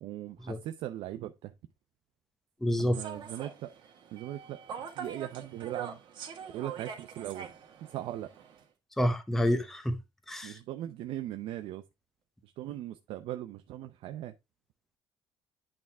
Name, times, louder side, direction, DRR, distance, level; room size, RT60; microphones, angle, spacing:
voice 1, 0.0-1.5 2.8-3.7 4.1-4.6 4.9-6.0 6.5-7.5 7.8-8.3 10.4-11.8 12.4-14.4, right 13 dB, 80° right, 0.6 m, -39 dB
voice 2, 2.6-3.0 9.0-10.0 10.3-10.6, equal, 5° left, 0.8 m, -28 dB
Human voice / Subway metro underground, 2.9-8.6, right 7 dB, 55° right, 1.7 m, -44 dB
8.8 x 3.6 x 4.3 m
cardioid pair, 150°, 9 cm